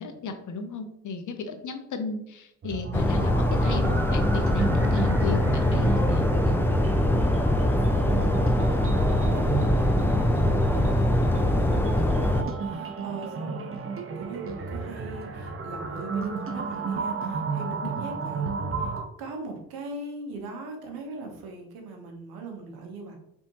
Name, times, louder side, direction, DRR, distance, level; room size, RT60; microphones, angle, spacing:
voice 1, 0.0-6.3, left 4 dB, 55° left, 7 dB, 0.8 m, -35 dB
sound 1, 2.6-19.0, right 4 dB, 35° right, 0.7 m, -33 dB
sound 2, 2.9-12.4, left 1 dB, 5° left, 0.5 m, -23 dB
voice 2, 7.0-13.7 14.1-18.9 19.2-23.2, right 3 dB, 80° right, 3 dB, 1.0 m, -40 dB
4.3 x 3.5 x 2.9 m, 0.77 s
hypercardioid pair, 45°, 36 cm